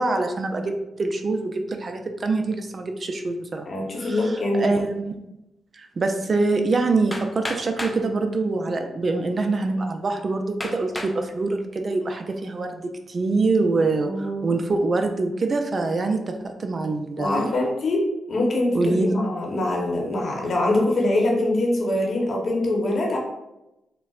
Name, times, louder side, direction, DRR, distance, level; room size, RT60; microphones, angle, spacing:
voice 1, 0.0-3.7 4.0-5.2 5.7-17.5 18.7-19.1, right 3 dB, 50° right, 5 dB, 0.4 m, -25 dB
voice 2, 3.7-4.7 14.0-14.5 17.2-18.8 19.0-23.2, left 1 dB, 55° left, -1 dB, 0.9 m, -23 dB
Hammer, 7.1-8.0 8.9-9.0 9.6-9.7 10.6-11.2 11.8-12.2, left 1 dB, 10° left, 0.5 m, -33 dB
4.0 x 2.1 x 2.4 m, 0.93 s
supercardioid pair, 55°, 0 cm